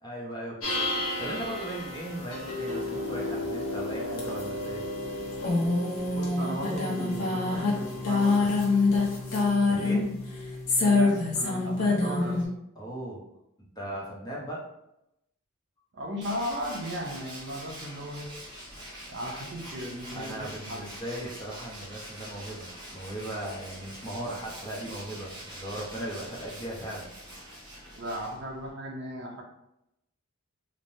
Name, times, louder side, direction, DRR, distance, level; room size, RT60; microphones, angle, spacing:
voice 1, 0.0-4.9 9.7-10.1 12.8-13.2 13.6-14.6 18.8-18.9 20.1-27.1, right 1 dB, 20° left, -4 dB, 0.7 m, -38 dB
sound 1, 0.6-12.5, left 3 dB, 70° left, 0.8 m, -27 dB
voice 2, 6.1-8.6 10.8-12.5 15.9-18.3 19.0-20.9 28.0-29.4, equal, 55° right, 1 dB, 0.5 m, -36 dB
Tools, 16.2-28.7, right 1 dB, 20° right, 0.7 m, -44 dB
3.1 x 2.1 x 2.6 m, 0.85 s
head